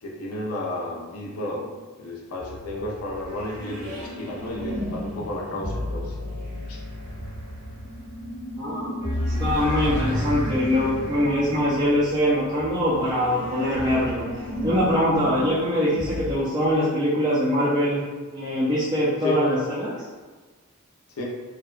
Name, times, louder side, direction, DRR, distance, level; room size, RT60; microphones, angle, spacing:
voice 1, 0.0-1.7 2.0-6.2 6.7-6.8 19.2-19.4 21.2-21.3, left 1 dB, 75° left, -2 dB, 0.5 m, -32 dB
sound 1, 2.4-16.4, left 1 dB, 80° right, 1.2 m, -32 dB
voice 2, 8.6-14.3 14.6-18.0 18.3-19.9, equal, 20° right, -10 dB, 0.4 m, -23 dB
2.7 x 2.1 x 2.4 m, 1.3 s
head